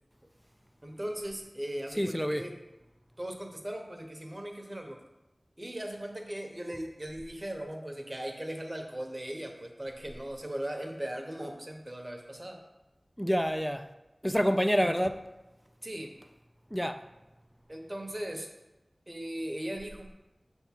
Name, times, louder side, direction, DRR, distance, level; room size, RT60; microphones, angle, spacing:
voice 1, 0.8-2.5 3.2-5.0 5.6-12.6 14.8-14.9 15.8-16.2 17.7-18.5 19.1-20.1, right 1 dB, 25° right, 1.0 m, -38 dB
voice 2, 2.0-2.5 13.2-13.9 14.2-15.2 16.7-17.0, equal, ahead, 0.4 m, -27 dB
6.7 x 3.6 x 5.8 m
wide cardioid pair, 60°, 0 cm